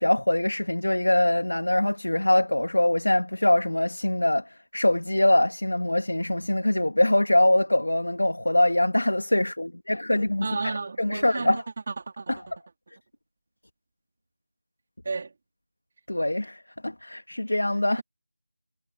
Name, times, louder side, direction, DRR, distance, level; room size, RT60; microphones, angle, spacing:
voice 1, 0.0-11.6 12.3-12.4 16.1-18.0, left 1 dB, 90° left, 2.3 m, -23 dB
voice 2, 10.4-12.3 15.0-15.3, right 4 dB, 35° right, 3.1 m, -32 dB
figure-of-eight pair, 170°, 0 cm